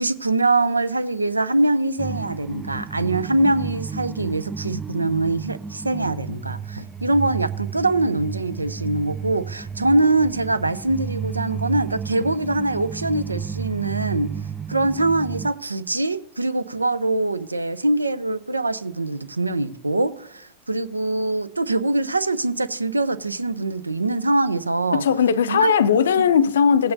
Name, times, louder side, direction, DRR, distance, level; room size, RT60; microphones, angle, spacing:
voice 1, 0.0-14.3 14.7-25.0 25.5-25.7, right 2 dB, 80° right, 0.4 m, -23 dB
sound 1, 2.0-15.5, right 6 dB, 10° right, 0.3 m, -32 dB
voice 2, 24.9-26.9, left 7 dB, 65° left, 0.4 m, -18 dB
16.5 x 8.5 x 2.6 m
figure-of-eight pair, 90°, 0 cm